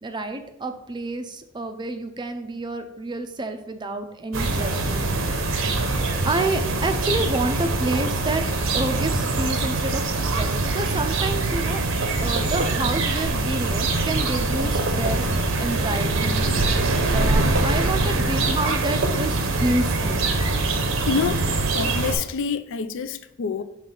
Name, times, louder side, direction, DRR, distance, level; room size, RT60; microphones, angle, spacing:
voice 1, 0.0-5.5 6.3-8.4 8.7-11.8 12.2-20.3, right 2 dB, 20° right, 0.4 m, -29 dB
sound 1, 4.3-22.1, right 2 dB, 70° right, 0.7 m, -23 dB
voice 2, 21.1-21.4 21.7-23.6, left 5 dB, 65° left, 0.4 m, -26 dB
5.7 x 3.2 x 5.4 m
head